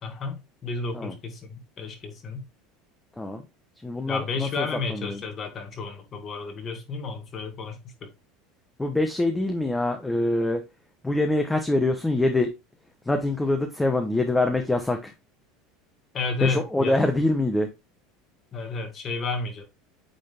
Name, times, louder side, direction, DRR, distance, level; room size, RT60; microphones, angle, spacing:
voice 1, 0.0-2.5 4.1-8.1 16.1-16.9 18.5-19.6, left 4 dB, 35° left, 2.1 m, -32 dB
voice 2, 3.8-5.2 8.8-10.6 11.0-12.5 13.1-15.1 16.4-17.7, left 2 dB, 10° left, 0.9 m, -24 dB
8.8 x 3.9 x 3.5 m
supercardioid pair, 115°, 0 cm